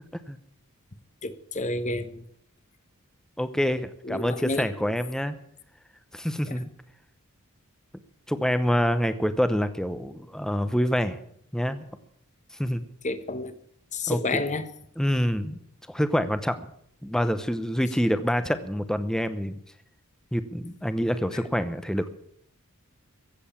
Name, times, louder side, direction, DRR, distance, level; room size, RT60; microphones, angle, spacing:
voice 1, 1.2-2.2 4.0-4.9 6.4-6.6 13.0-13.6 13.9-14.7, left 2 dB, 35° left, 1.1 m, -30 dB
voice 2, 3.4-5.4 6.1-6.7 8.3-11.2 11.5-11.9 12.6-12.8 14.1-14.4 15.0-15.6 15.9-16.6 17.0-19.6 20.3-22.1, equal, 5° left, 0.8 m, -26 dB
15.5 x 7.8 x 8.7 m
head